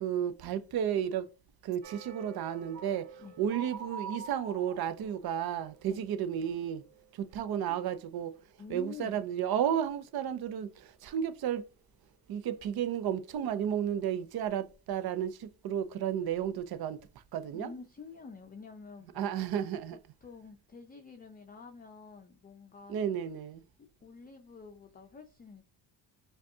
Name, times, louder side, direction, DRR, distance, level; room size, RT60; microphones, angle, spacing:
voice 1, 0.0-1.3 1.6-3.1 3.4-6.8 7.3-8.3 8.7-10.7 11.0-11.6 12.3-17.0 17.3-17.7 19.1-20.0 22.9-23.6, right 9 dB, 60° right, 0.6 m, -32 dB
sound 1, 1.8-7.6 7.9-8.2 8.6-8.8, right 5 dB, 80° right, 1.4 m, -47 dB
voice 2, 8.6-9.2 17.5-19.4 20.2-23.0 24.0-25.6, left 4 dB, 20° left, 0.5 m, -48 dB
5.0 x 2.4 x 2.7 m
cardioid pair, 95°, 42 cm